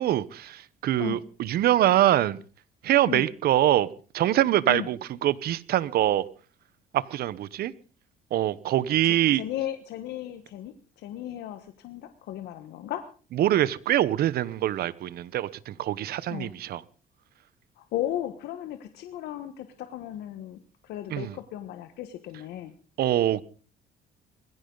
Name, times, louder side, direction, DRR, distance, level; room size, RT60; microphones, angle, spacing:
voice 1, 0.0-2.4 2.8-3.9 4.1-6.3 6.9-7.7 8.3-9.4 13.3-16.8 21.1-21.4 23.0-23.4, right 13 dB, 65° right, 1.0 m, -24 dB
voice 2, 9.0-13.0 16.3-16.5 17.8-22.7, left 12 dB, 75° left, 1.4 m, -35 dB
20.5 x 16.0 x 4.0 m
cardioid pair, 110°, 17 cm